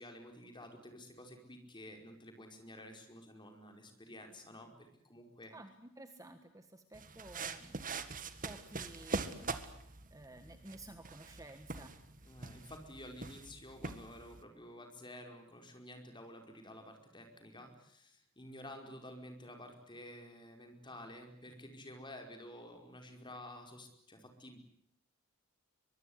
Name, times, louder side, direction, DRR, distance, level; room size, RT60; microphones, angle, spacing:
voice 1, 0.0-5.5 12.2-24.6, left 1 dB, 20° left, 5 dB, 4.9 m, -51 dB
voice 2, 5.5-7.9 8.1-12.0 12.2-12.4, right 1 dB, 15° right, 8 dB, 1.5 m, -54 dB
sound 1, 6.9-14.4, right 3 dB, 40° right, 1.8 m, -43 dB
23.5 x 23.5 x 9.6 m, 0.70 s
head